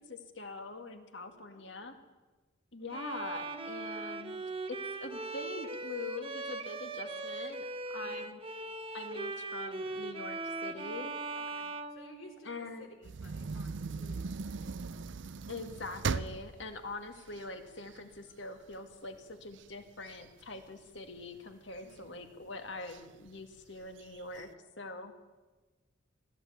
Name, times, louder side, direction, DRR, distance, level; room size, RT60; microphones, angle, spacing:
voice 1, 0.0-1.9 2.7-4.4 4.7-7.6 7.9-8.4 8.9-11.1 12.4-12.9 15.5-24.5 24.8-25.1, left 2 dB, 60° left, 6 dB, 2.1 m, -43 dB
voice 2, 1.5-2.0 2.8-3.0 11.4-14.7 21.8-22.1, left 1 dB, 80° left, 4 dB, 3.6 m, -57 dB
Bowed string instrument, 2.9-12.7, right 3 dB, 25° right, 1.1 m, -40 dB
sound 1, 13.0-18.2 18.7-18.8 19.1-21.2 21.7-22.3 22.9-23.0 23.3-23.4 23.8-24.4, right 4 dB, 65° right, 0.5 m, -39 dB
20.0 x 14.0 x 9.5 m, 1.2 s
head